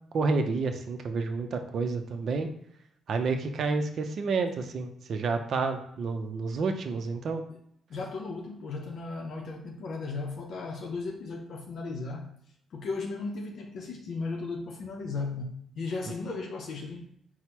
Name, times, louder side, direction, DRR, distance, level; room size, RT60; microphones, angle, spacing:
voice 1, 0.1-2.5 3.1-7.4, right 4 dB, 60° right, 0.5 m, -29 dB
voice 2, 7.9-12.3 12.7-17.1, left 3 dB, 65° left, 0.5 m, -36 dB
4.3 x 2.0 x 4.5 m
cardioid pair, 90°, 0 cm